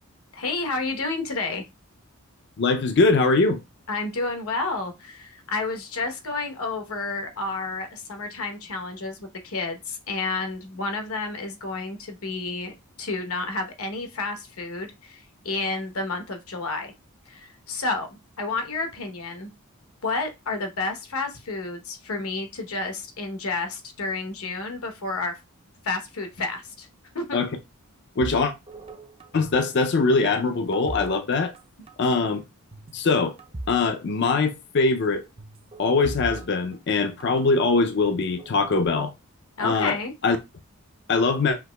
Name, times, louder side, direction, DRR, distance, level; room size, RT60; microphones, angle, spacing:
voice 1, 0.3-1.7 3.9-12.7 13.0-16.9 17.3-19.5 20.0-25.4 25.8-26.9 27.1-27.4 39.6-40.1, left 3 dB, 80° left, 1.0 m, -30 dB
voice 2, 2.6-3.6 27.3-27.5 28.2-28.5 29.3-31.5 32.0-32.4 32.9-33.3 33.7-35.3 35.8-39.1 39.6-40.0 40.2-40.4 41.1-41.6, left 3 dB, 50° left, 0.4 m, -22 dB
sound 1, 28.2-29.8 30.0-31.6 31.9-32.1 32.7-33.8 34.1-34.2 35.4-37.4 38.0-38.9, right 2 dB, 25° right, 0.5 m, -39 dB
5.8 x 3.0 x 2.2 m
head